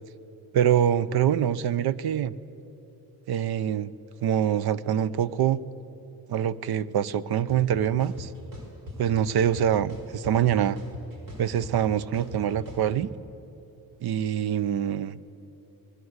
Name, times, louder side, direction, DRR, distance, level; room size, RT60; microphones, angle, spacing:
voice 1, 0.5-2.3 3.3-3.9 4.2-5.6 6.3-8.3 9.0-10.8 11.4-13.1 14.0-15.2, right 9 dB, 80° right, 17 dB, 0.8 m, -24 dB
sound 1, 7.5-7.6 8.0-9.0 9.4-10.5 10.8-12.8, left 1 dB, 60° right, 5.0 m, -41 dB
25.5 x 19.5 x 8.1 m, 3.0 s
wide cardioid pair, 170°, 37 cm